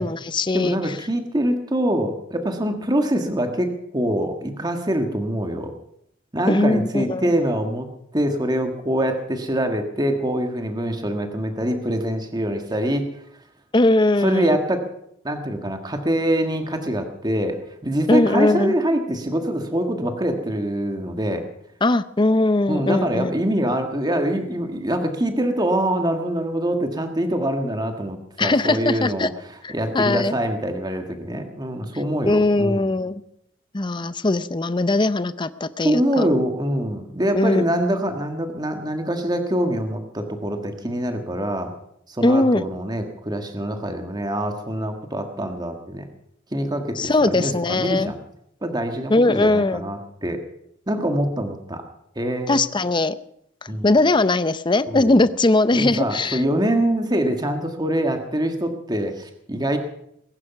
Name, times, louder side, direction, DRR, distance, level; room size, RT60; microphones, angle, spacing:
voice 1, 0.0-0.8 6.5-7.3 13.7-14.6 18.1-18.7 21.8-23.3 28.4-29.3 29.6-30.4 32.3-33.2 33.7-36.3 37.3-37.8 42.2-42.6 47.0-48.1 49.1-49.8 52.5-53.1 53.8-56.4, left 2 dB, 25° left, 14 dB, 0.6 m, -20 dB
voice 2, 0.5-5.7 6.3-7.9 8.1-13.1 14.2-14.8 15.2-21.4 22.7-32.9 35.8-41.7 42.1-46.1 46.5-48.2 48.6-50.4 50.9-51.8 52.1-52.6 53.7-53.9 54.9-55.1 55.7-59.8, right 1 dB, 20° right, 5 dB, 1.6 m, -24 dB
21.0 x 11.0 x 5.9 m, 0.74 s
head